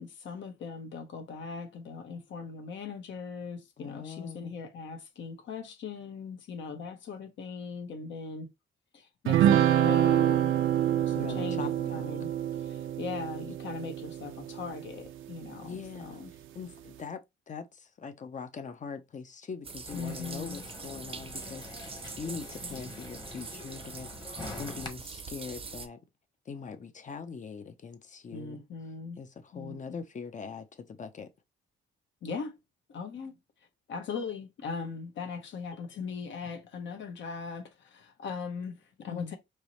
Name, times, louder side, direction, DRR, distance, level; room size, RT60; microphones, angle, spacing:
voice 1, 0.0-8.5 8.9-10.5 10.9-12.3 12.6-16.3 19.9-20.6 22.6-22.8 28.3-29.2 29.5-30.0 32.2-32.6 32.9-33.4 33.9-39.4, left 5 dB, 70° left, 1.2 m, -39 dB
voice 2, 3.8-4.5 11.1-12.1 15.6-16.2 16.5-17.2 17.5-26.0 26.5-28.6 29.2-31.3 39.0-39.3, left 5 dB, 40° left, 0.7 m, -42 dB
sound 1, 9.3-14.9, right 11 dB, 80° right, 0.5 m, -26 dB
Tub close, 19.6-25.9, right 5 dB, 30° right, 0.6 m, -43 dB
sound 2, 19.9-24.9, left 2 dB, 20° left, 1.2 m, -45 dB
4.6 x 2.8 x 3.2 m
cardioid pair, 90°, 20 cm